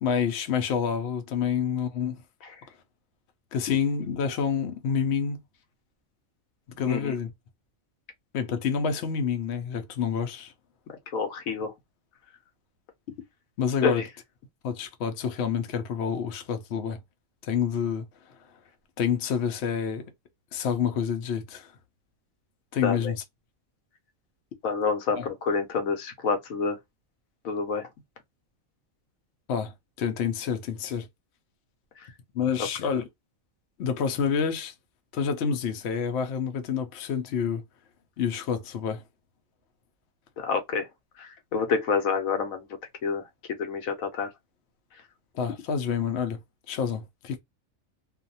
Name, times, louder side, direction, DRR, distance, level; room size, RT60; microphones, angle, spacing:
voice 1, 0.0-2.2 3.5-5.4 6.7-7.3 8.3-10.5 13.6-14.0 14.6-17.0 17.4-18.1 19.0-20.0 20.5-21.7 22.7-23.2 25.2-25.3 29.5-31.1 32.3-33.0 33.8-34.7 35.1-37.6 38.2-39.0 45.3-46.4 46.7-47.4, left 7 dB, 60° left, 0.8 m, -28 dB
voice 2, 11.1-11.7 13.8-14.1 22.8-23.1 24.6-26.8 27.4-27.9 40.4-40.9 41.2-42.7 43.0-43.2 43.5-44.3, left 5 dB, 85° left, 1.1 m, -28 dB
2.5 x 2.3 x 2.6 m
omnidirectional pair, 1.4 m